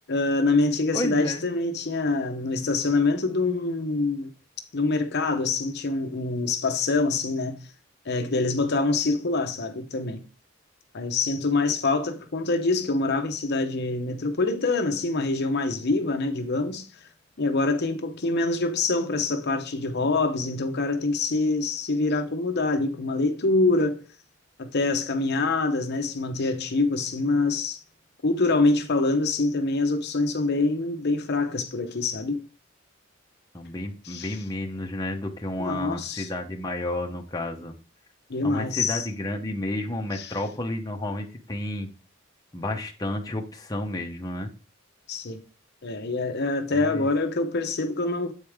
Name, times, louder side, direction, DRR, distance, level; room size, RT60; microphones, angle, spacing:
voice 1, 0.1-4.3 4.7-7.6 8.1-10.2 10.9-16.9 17.4-24.0 24.6-27.8 28.2-32.4 34.0-34.4 35.6-36.3 38.3-39.1 40.1-40.3 45.1-45.4 45.8-48.3, left 3 dB, 55° left, 0.8 m, -25 dB
voice 2, 0.9-1.5 33.5-37.7 38.4-41.9 42.5-44.5 46.7-47.1, left 1 dB, 20° left, 0.9 m, -31 dB
8.2 x 4.9 x 3.5 m
head